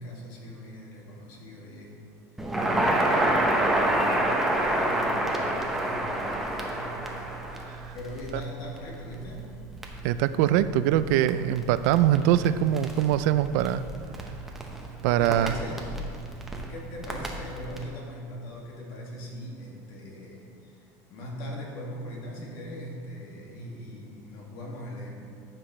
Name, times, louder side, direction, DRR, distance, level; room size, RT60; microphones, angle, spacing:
voice 1, 0.0-2.0 3.0-4.2 4.6-7.0 7.9-9.5 15.1-15.9 16.3-16.4 16.7-25.2, left 1 dB, 60° left, -2 dB, 2.2 m, -40 dB
Crackle, 2.4-17.8, right 1 dB, 5° right, 0.9 m, -29 dB
voice 2, 10.0-13.8 15.0-15.5, right 12 dB, 75° right, 13 dB, 0.4 m, -23 dB
14.5 x 6.0 x 3.2 m, 2.4 s
cardioid pair, 140°, 9 cm